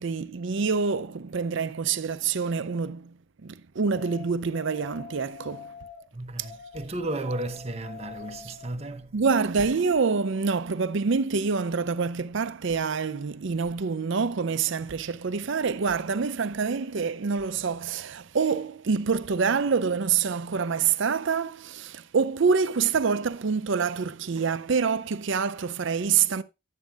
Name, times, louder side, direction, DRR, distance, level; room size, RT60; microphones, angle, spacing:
voice 1, 0.0-5.7 8.4-8.5 9.1-26.4, right 5 dB, 60° right, 0.5 m, -26 dB
sound 1, 3.9-6.0 6.4-8.7, left 6 dB, 85° left, 3.4 m, -45 dB
voice 2, 6.1-9.2, right 2 dB, 30° right, 0.8 m, -34 dB
11.5 x 9.0 x 2.4 m
head